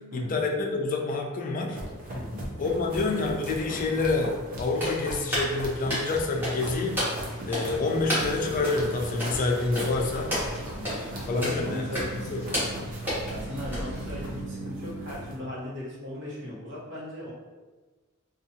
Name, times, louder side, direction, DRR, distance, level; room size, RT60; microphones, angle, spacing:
voice 1, 0.1-1.8 2.6-7.0 7.5-10.4 11.3-11.9 12.3-12.4, left 3 dB, 40° left, 2 dB, 0.3 m, -27 dB
sound 1, 1.7-15.4, right 1 dB, 40° right, 0.6 m, -38 dB
voice 2, 2.1-2.4 10.7-12.6 13.3-17.3, left 1 dB, 60° right, -7 dB, 1.0 m, -37 dB
sound 2, 4.7-14.5, equal, 10° right, 1.0 m, -34 dB
2.6 x 2.4 x 2.7 m, 1.3 s
head